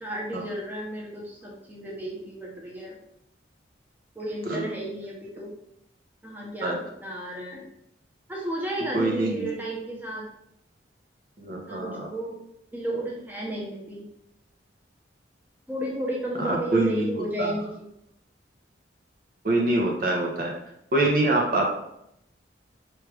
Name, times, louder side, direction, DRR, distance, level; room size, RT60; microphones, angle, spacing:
voice 1, 0.0-3.0 4.2-5.5 6.2-7.6 8.3-10.2 11.7-12.4 12.7-14.0 15.7-17.8, right 1 dB, 10° right, -4 dB, 0.8 m, -33 dB
voice 2, 8.9-9.5 11.4-12.1 16.4-17.5 19.4-20.5 20.9-21.7, right 2 dB, 50° right, -1 dB, 0.9 m, -25 dB
4.6 x 3.3 x 3.4 m, 0.79 s
head